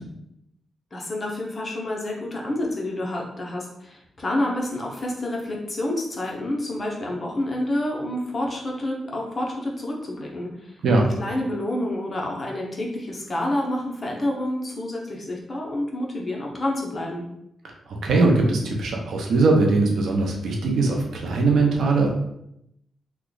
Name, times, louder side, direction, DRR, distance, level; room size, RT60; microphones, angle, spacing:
voice 1, 0.9-10.8 11.2-17.2, left 1 dB, 30° left, -1 dB, 0.7 m, -28 dB
voice 2, 18.0-22.1, right 3 dB, 70° right, 0 dB, 0.7 m, -20 dB
3.0 x 2.3 x 3.8 m, 0.79 s
wide cardioid pair, 130°, 0 cm